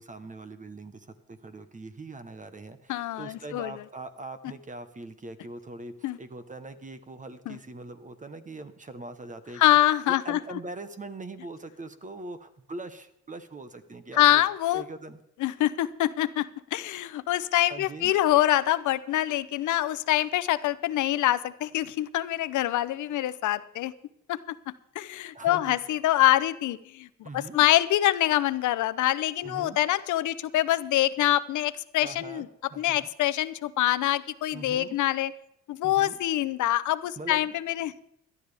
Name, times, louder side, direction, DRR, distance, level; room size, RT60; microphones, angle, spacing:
voice 1, 0.0-9.6 10.1-14.4 14.7-15.2 17.7-18.1 25.3-25.8 27.2-27.6 29.4-29.8 32.0-33.0 34.5-35.0 35.8-36.2 37.2-37.5, right 2 dB, 25° right, 10 dB, 1.1 m, -42 dB
voice 2, 2.9-3.7 6.0-6.2 7.5-7.6 9.6-10.6 14.1-14.8 15.4-23.9 24.3-24.4 24.9-32.5 32.8-35.3 35.7-38.0, left 14 dB, 75° left, 16 dB, 0.7 m, -25 dB
18.0 x 12.0 x 3.5 m, 0.78 s
cardioid pair, 90°, 30 cm